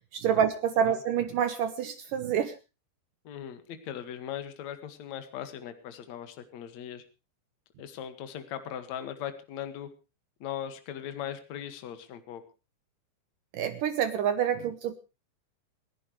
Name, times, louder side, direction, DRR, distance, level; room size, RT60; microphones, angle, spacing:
voice 1, 0.1-2.5 13.5-14.9, right 8 dB, 70° right, 11 dB, 2.1 m, -27 dB
voice 2, 3.2-7.0 7.8-9.9 10.4-12.4, left 10 dB, 50° left, 9 dB, 2.6 m, -39 dB
29.0 x 11.0 x 3.2 m, 0.31 s
omnidirectional pair, 5.0 m